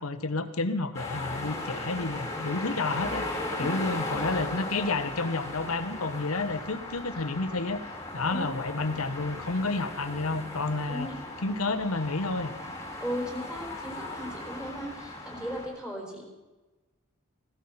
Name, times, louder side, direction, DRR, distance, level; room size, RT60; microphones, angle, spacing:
voice 1, 0.0-3.2 3.6-7.8 8.1-11.1 11.4-12.5, left 3 dB, 80° left, 11 dB, 1.1 m, -30 dB
sound 1, 0.9-15.7, left 2 dB, 15° left, 2.4 m, -37 dB
voice 2, 10.9-11.2 13.0-16.2, equal, 5° right, 1 dB, 3.9 m, -36 dB
16.0 x 13.0 x 5.7 m, 1.2 s
head